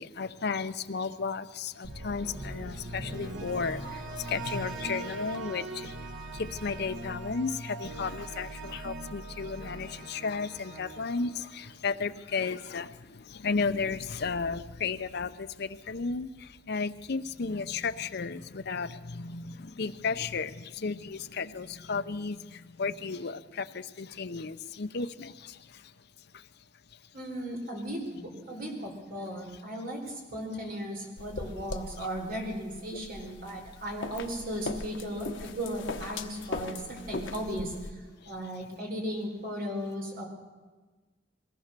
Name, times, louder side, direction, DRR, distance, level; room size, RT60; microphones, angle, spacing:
voice 1, 0.0-25.9 26.3-26.5 32.9-33.0 38.2-38.3, left 4 dB, 60° left, 10 dB, 0.7 m, -34 dB
sound 1, 1.8-12.0, right 2 dB, 85° right, 1.6 m, -41 dB
voice 2, 27.1-38.0 38.2-40.3, equal, 50° right, 1 dB, 4.5 m, -36 dB
sound 2, 31.2-37.9, left 3 dB, 80° left, 1.2 m, -40 dB
22.0 x 17.5 x 6.8 m, 1.3 s
head